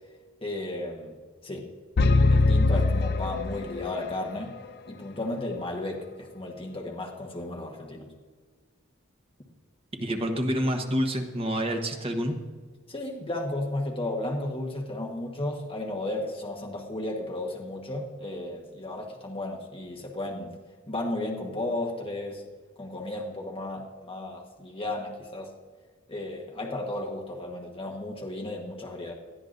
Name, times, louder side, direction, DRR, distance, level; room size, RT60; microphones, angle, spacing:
voice 1, 0.4-1.1 1.4-1.7 2.0-4.5 4.9-8.1 12.9-20.5 20.9-22.4 22.8-25.5 26.1-29.1, left 1 dB, 25° left, -1 dB, 1.3 m, -34 dB
sound 1, 2.0-4.1, left 3 dB, 50° left, 0.5 m, -22 dB
voice 2, 9.9-12.4, equal, 25° right, 4 dB, 1.1 m, -28 dB
19.0 x 12.5 x 2.6 m, 1.5 s
head